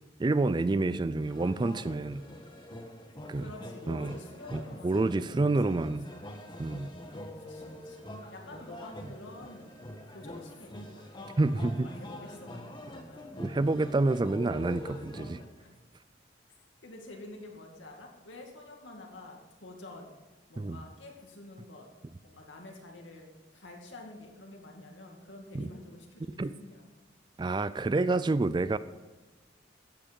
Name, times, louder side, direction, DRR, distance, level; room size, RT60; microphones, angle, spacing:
voice 1, 0.2-2.3 3.3-3.5 3.9-4.2 4.5-6.1 6.6-6.9 11.4-11.9 13.4-15.4 20.6-20.8 25.5-25.7 26.4-26.5 27.4-28.8, right 2 dB, 25° right, 15 dB, 0.3 m, -28 dB
sound 1, 1.2-15.5, left 1 dB, 25° left, 1.4 m, -45 dB
voice 2, 3.3-6.3 7.5-9.8 10.1-13.3 15.6-15.7 16.8-20.1 20.5-21.9 22.2-23.3 23.5-26.8, left 2 dB, 85° left, 1 dB, 2.2 m, -48 dB
15.0 x 8.7 x 5.3 m, 1.2 s
head